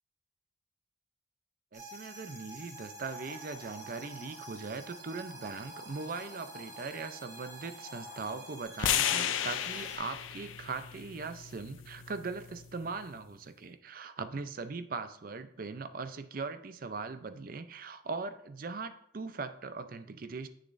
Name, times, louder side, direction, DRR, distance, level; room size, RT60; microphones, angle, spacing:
sound 1, 1.7-10.0, right 2 dB, 15° right, 1.2 m, -49 dB
voice 1, 1.7-20.5, right 4 dB, 45° right, 10 dB, 0.5 m, -40 dB
sound 2, 2.7-8.6, left 2 dB, 45° left, 0.9 m, -53 dB
sound 3, 8.8-13.0, left 10 dB, 80° left, 0.5 m, -34 dB
8.2 x 6.4 x 2.6 m, 0.70 s
head